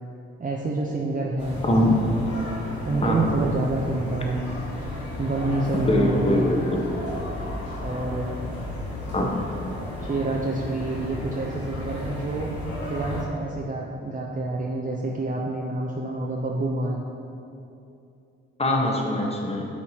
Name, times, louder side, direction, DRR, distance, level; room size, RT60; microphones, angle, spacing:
voice 1, 0.4-1.6 2.3-2.5 2.8-4.4 5.2-6.6 7.8-8.3 10.0-12.5 12.9-17.0, right 2 dB, 25° right, -2 dB, 0.7 m, -27 dB
sound 1, 1.4-13.2, left 1 dB, 75° left, 1.3 m, -33 dB
voice 2, 5.7-6.8 9.1-9.3 18.6-19.7, left 1 dB, 20° left, 0 dB, 1.2 m, -22 dB
10.5 x 4.2 x 2.9 m, 2.7 s
hypercardioid pair, 40°, 31 cm